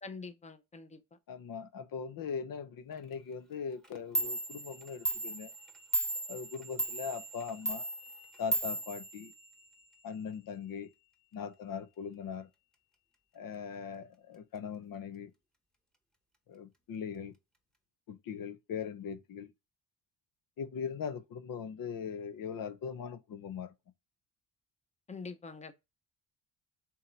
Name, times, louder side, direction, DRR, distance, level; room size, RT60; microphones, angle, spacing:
voice 1, 0.0-1.0 25.1-25.7, left 4 dB, 20° left, 0.8 m, -45 dB
voice 2, 1.3-5.5 6.3-7.9 8.4-9.3 10.0-10.9 11.3-12.5 13.3-15.3 16.5-17.3 18.1-19.5 20.6-23.7, left 6 dB, 60° left, 0.9 m, -40 dB
Clock, 3.8-3.9 4.1-9.8, right 1 dB, ahead, 1.1 m, -36 dB
7.2 x 3.1 x 4.7 m
cardioid pair, 95°, 38 cm